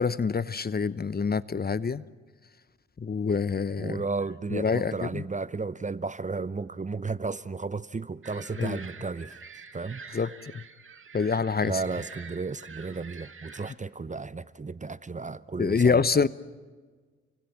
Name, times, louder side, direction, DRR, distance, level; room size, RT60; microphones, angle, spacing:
voice 1, 0.0-2.0 3.0-4.0 4.5-5.2 8.6-8.8 10.1-10.3 10.5-10.6 11.1-11.7 15.6-16.3, left 5 dB, 30° left, 0.8 m, -26 dB
voice 2, 3.8-9.4 9.7-10.2 11.6-16.3, right 4 dB, 20° right, 0.8 m, -34 dB
sound 1, 8.2-13.7, right 5 dB, 40° right, 2.0 m, -47 dB
29.5 x 24.5 x 5.9 m
hypercardioid pair, 45°, 33 cm